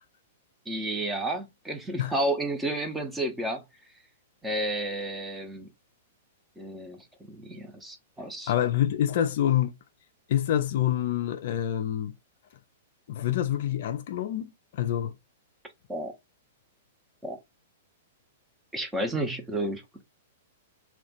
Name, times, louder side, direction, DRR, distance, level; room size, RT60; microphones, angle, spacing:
voice 1, 0.7-3.6 4.4-5.7 6.6-8.5 15.9-16.1 17.2-17.4 18.7-19.8, right 1 dB, 5° right, 0.7 m, -31 dB
voice 2, 8.5-9.7 10.3-12.1 13.1-15.1, left 11 dB, 50° left, 0.3 m, -26 dB
2.4 x 2.2 x 3.7 m
figure-of-eight pair, 105°, 0 cm